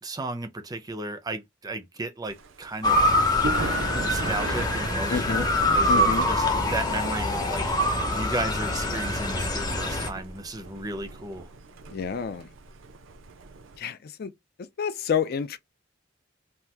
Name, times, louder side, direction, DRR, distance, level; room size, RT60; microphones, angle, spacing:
voice 1, 0.0-3.0 3.9-5.5 5.7-11.5, right 2 dB, 20° right, 0.5 m, -34 dB
Thunder, 2.3-13.8, right 3 dB, 80° right, 0.5 m, -39 dB
Motor vehicle (road) / Siren, 2.8-10.1, left 1 dB, 20° left, 0.7 m, -24 dB
voice 2, 5.1-5.5 5.9-6.3 11.9-12.5 13.8-14.3 14.8-15.6, left 6 dB, 50° left, 0.4 m, -28 dB
2.7 x 2.3 x 3.3 m
head